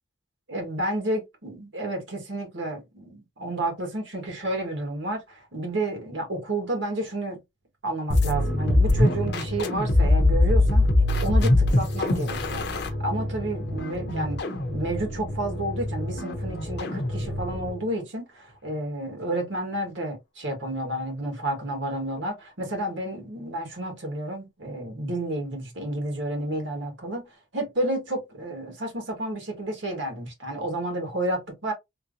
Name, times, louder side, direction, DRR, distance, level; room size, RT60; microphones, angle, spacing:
voice 1, 0.5-7.4 7.8-10.9 11.2-14.4 14.7-27.2 27.5-31.7, right 1 dB, 65° right, 1.5 m, -31 dB
sound 1, 8.1-17.8, left 1 dB, 55° left, 0.8 m, -24 dB
3.3 x 2.9 x 2.5 m
head